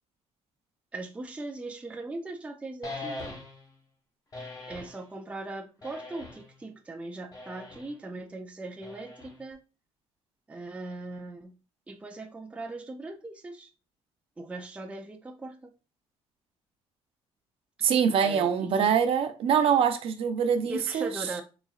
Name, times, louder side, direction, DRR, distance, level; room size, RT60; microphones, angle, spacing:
voice 1, 0.9-3.2 4.7-9.6 10.5-11.5 11.9-13.7 14.4-15.7 18.2-18.9 20.6-21.4, right 2 dB, 10° right, 0.5 m, -39 dB
sound 1, 2.8-3.7 4.3-5.0 5.8-6.6 7.3-7.9 8.8-9.5, left 2 dB, 35° left, 1.1 m, -41 dB
voice 2, 17.8-21.1, right 7 dB, 60° right, 0.6 m, -24 dB
4.0 x 3.8 x 2.4 m
cardioid pair, 135°, 11 cm